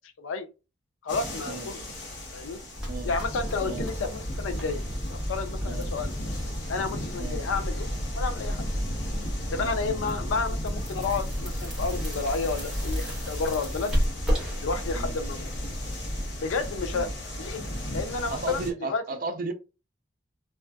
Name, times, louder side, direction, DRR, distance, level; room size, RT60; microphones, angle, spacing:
voice 1, 1.0-1.8 2.3-2.6 3.0-4.8 5.3-6.1 6.7-7.9 8.1-8.6 9.5-13.9 14.6-15.5 16.4-17.1 17.4-17.6 17.9-19.0, left 4 dB, 85° left, 0.4 m, -31 dB
sound 1, 1.1-18.7, left 1 dB, 60° left, 0.8 m, -36 dB
sound 2, 2.7-16.3, equal, 5° right, 0.9 m, -32 dB
voice 2, 18.3-19.5, right 3 dB, 45° right, 0.4 m, -34 dB
2.5 x 2.3 x 2.2 m
head